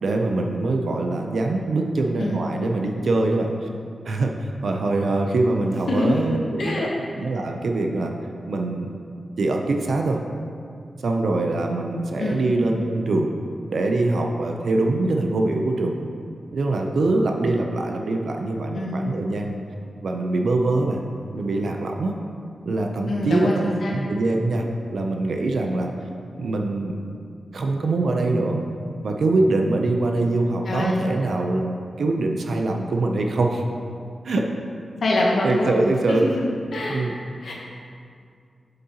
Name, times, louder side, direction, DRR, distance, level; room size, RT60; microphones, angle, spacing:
voice 1, 0.0-3.7 4.0-6.9 7.2-8.1 8.5-9.0 9.4-10.2 11.0-13.3 13.7-15.9 16.5-19.6 20.0-21.0 21.3-22.2 22.7-23.5 23.9-25.9 26.4-27.0 27.5-28.6 29.0-33.6 34.2-34.4 35.4-36.3 36.9-37.1, right 2 dB, 70° right, 2 dB, 0.5 m, -23 dB
voice 2, 5.9-6.9 12.2-12.4 18.7-19.0 23.1-23.5 23.8-23.9 30.7-31.0 35.0-35.7 36.2-36.3 36.7-37.0 37.4-37.5, left 2 dB, 75° left, -3 dB, 0.9 m, -24 dB
7.4 x 6.7 x 2.9 m, 2.3 s
wide cardioid pair, 120°, 0 cm